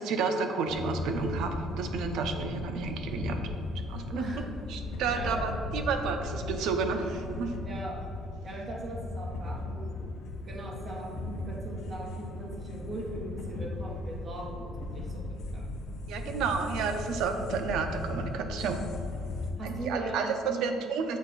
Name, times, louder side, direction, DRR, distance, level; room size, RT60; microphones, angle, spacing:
voice 1, 0.0-3.4 3.9-4.3 4.7-7.5 16.1-18.9 19.6-21.2, right 5 dB, 70° right, 6 dB, 0.5 m, -31 dB
sound 1, 0.7-19.5, left 2 dB, 75° left, 0.7 m, -37 dB
voice 2, 4.1-4.4 5.1-5.3 5.9-6.0 7.6-8.0 8.4-10.0 10.4-15.6 19.6-20.9, right 2 dB, 25° right, -2 dB, 1.0 m, -40 dB
7.2 x 2.4 x 5.6 m, 2.4 s
cardioid pair, 165°, 0 cm